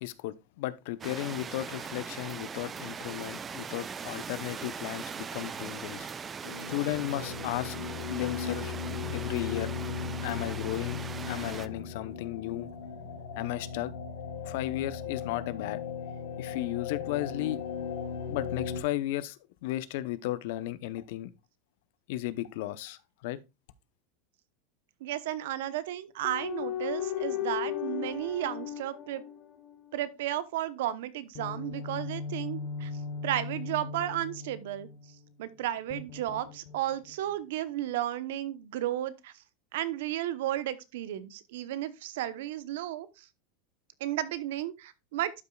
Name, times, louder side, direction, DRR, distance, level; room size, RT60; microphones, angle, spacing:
voice 1, 0.0-6.1 6.7-7.8 8.1-8.7 9.1-9.7 10.2-11.0 11.3-12.7 13.3-13.9 14.4-15.8 16.4-17.6 18.3-21.3 22.1-23.4, left 15 dB, 70° left, 0.7 m, -34 dB
sound 1, 1.0-11.7, right 6 dB, 25° right, 0.5 m, -40 dB
sound 2, 6.4-18.8, left 6 dB, 85° left, 1.8 m, -37 dB
voice 2, 25.0-29.2 29.9-32.9 33.2-34.9 35.4-39.3 39.7-43.2 44.0-45.4, right 13 dB, 75° right, 0.8 m, -33 dB
sound 3, 26.2-29.9 31.3-35.1 35.9-37.1, left 8 dB, 45° left, 1.5 m, -37 dB
12.0 x 5.6 x 2.3 m
supercardioid pair, 120°, 0 cm